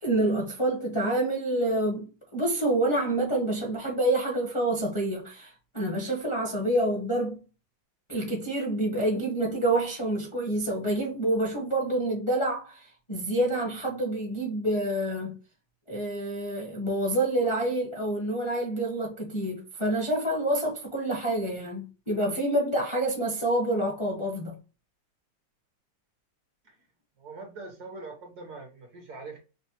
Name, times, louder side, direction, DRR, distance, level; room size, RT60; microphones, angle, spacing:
voice 1, 0.0-7.4 8.1-15.4 15.9-24.6, right 1 dB, 25° left, 0.7 m, -27 dB
voice 2, 27.2-29.4, right 3 dB, 60° right, 1.3 m, -42 dB
5.4 x 2.2 x 2.8 m
omnidirectional pair, 2.2 m